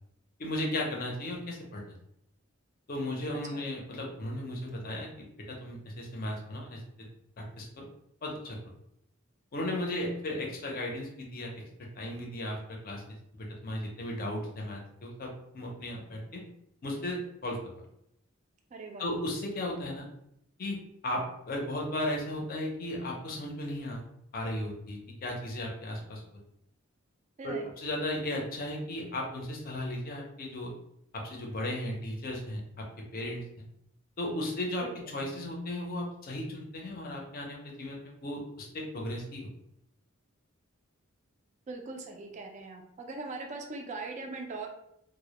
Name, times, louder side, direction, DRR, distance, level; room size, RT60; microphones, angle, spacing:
voice 1, 0.4-1.8 2.9-6.8 7.4-7.9 8.2-8.6 9.5-11.6 12.0-13.0 13.4-16.4 16.8-17.9 19.0-20.1 20.6-24.0 24.3-26.4 27.4-30.7 31.1-33.4 34.2-39.5, left 1 dB, 45° left, 0 dB, 0.5 m, -36 dB
voice 2, 18.7-19.1 27.4-27.7 34.8-34.9 41.7-44.7, right 3 dB, 35° right, 3 dB, 0.3 m, -40 dB
2.1 x 2.0 x 2.8 m, 0.76 s
head